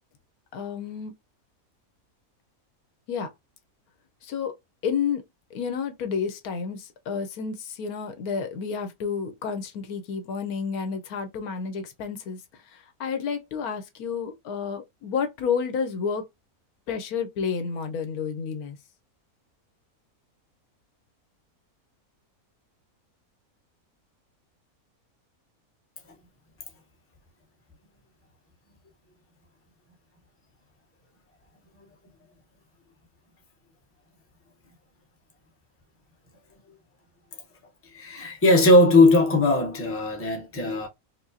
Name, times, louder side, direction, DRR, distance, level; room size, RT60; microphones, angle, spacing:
voice 1, 0.5-1.1 3.1-3.3 4.2-4.5 4.8-5.2 5.5-16.3 16.9-18.8, left 6 dB, 80° left, 1.2 m, -30 dB
voice 2, 37.9-40.9, left 2 dB, 10° left, 0.7 m, -19 dB
4.7 x 2.1 x 2.6 m
omnidirectional pair, 1.5 m